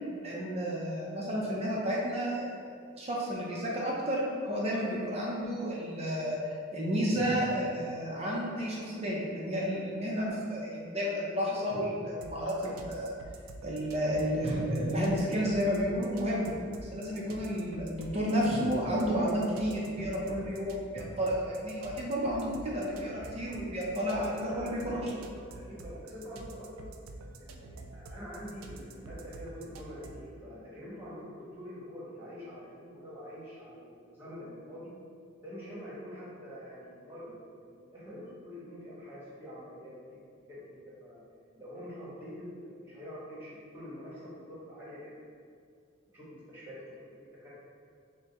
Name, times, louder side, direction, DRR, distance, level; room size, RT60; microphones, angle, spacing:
voice 1, 0.2-2.5 2.9-13.1 13.6-16.5 16.8-25.0, equal, 30° right, -4 dB, 0.6 m, -31 dB
sound 1, 12.2-30.3, right 2 dB, 90° right, 0.4 m, -47 dB
voice 2, 24.0-25.2 25.5-26.9 27.3-34.9 35.4-39.9 40.5-41.2 41.5-45.3 46.1-47.5, equal, 10° right, -9 dB, 1.2 m, -45 dB
6.4 x 2.2 x 2.9 m, 2.2 s
head